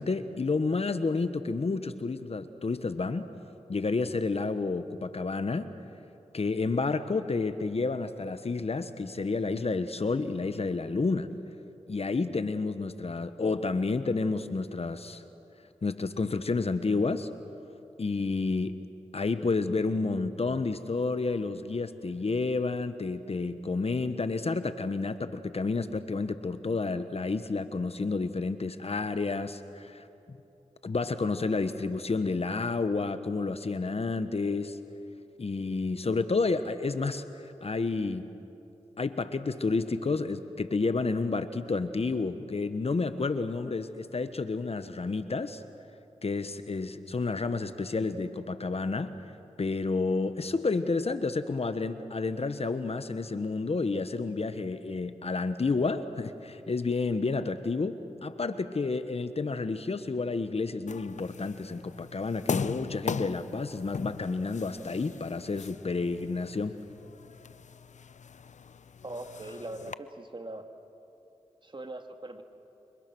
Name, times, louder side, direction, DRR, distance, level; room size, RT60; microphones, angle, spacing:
voice 1, 0.0-3.3 3.7-5.7 6.3-11.3 11.9-15.2 15.8-17.3 18.0-18.8 19.1-30.4 30.8-34.8 35.4-37.2 37.6-38.3 39.0-45.6 46.2-49.1 49.6-66.7, left 3 dB, 50° left, 11 dB, 1.3 m, -30 dB
sound 1, 60.9-69.9, left 6 dB, 65° left, 0.7 m, -39 dB
voice 2, 69.0-70.7 71.6-72.4, right 2 dB, 40° right, 5 dB, 2.4 m, -41 dB
27.5 x 25.5 x 6.2 m, 2.8 s
cardioid pair, 40°, 13 cm